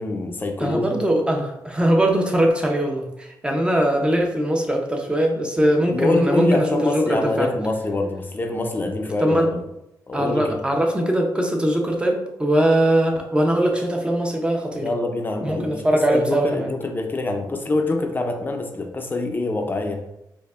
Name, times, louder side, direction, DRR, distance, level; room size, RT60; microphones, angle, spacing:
voice 1, 0.0-1.0 5.9-9.6 10.1-10.6 14.8-20.0, left 2 dB, 25° left, 4 dB, 0.5 m, -25 dB
voice 2, 0.6-7.5 9.2-9.5 10.1-14.9 15.4-16.7, right 1 dB, 15° right, 2 dB, 0.6 m, -21 dB
4.5 x 2.6 x 2.4 m, 0.86 s
cardioid pair, 105°, 8 cm